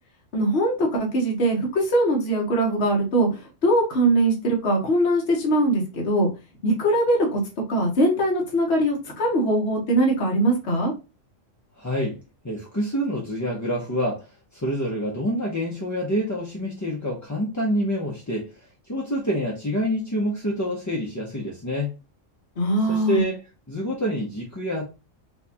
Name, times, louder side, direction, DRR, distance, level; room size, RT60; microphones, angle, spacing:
voice 1, 0.3-6.3 6.6-7.4 7.7-10.9 22.6-23.2, right 1 dB, 60° left, 1.3 m, -21 dB
voice 2, 11.8-12.2 12.4-14.3 14.5-18.5 18.9-21.9 22.9-23.4 23.7-24.8, equal, 20° left, 0.5 m, -27 dB
4.5 x 2.3 x 2.7 m
omnidirectional pair, 1.3 m